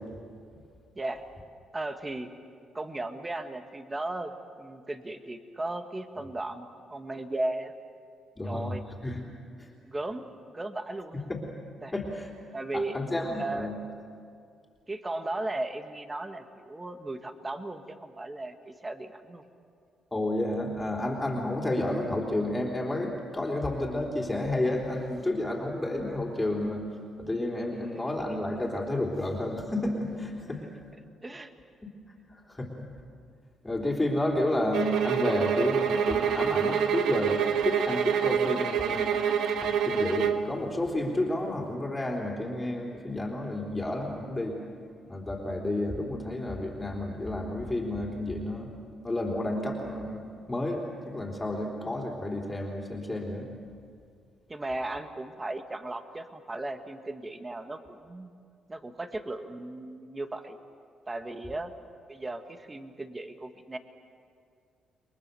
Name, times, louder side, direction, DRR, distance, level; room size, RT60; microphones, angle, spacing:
voice 1, 1.7-2.3 2.7-4.3 4.6-7.7 8.4-8.8 9.9-10.3 10.5-11.2 11.8-11.9 12.5-13.0 13.4-13.7 14.9-19.4 30.6-30.7 31.2-31.5 54.5-58.3 58.7-60.6 61.1-61.7 62.1-63.8, right 2 dB, 20° right, 7 dB, 1.8 m, -36 dB
voice 2, 8.4-8.7 9.0-9.2 9.6-9.7 11.3-11.4 11.9-12.3 12.7-13.8 20.1-26.8 27.2-30.7 32.3-32.9 33.6-37.4 37.7-39.2 39.5-44.6 45.1-48.7 49.0-53.5, left 1 dB, 15° left, -1 dB, 3.7 m, -31 dB
sound 1, 34.7-40.5, right 7 dB, 75° right, 1.4 m, -27 dB
29.5 x 22.5 x 7.0 m, 2.3 s
cardioid pair, 90°, 0 cm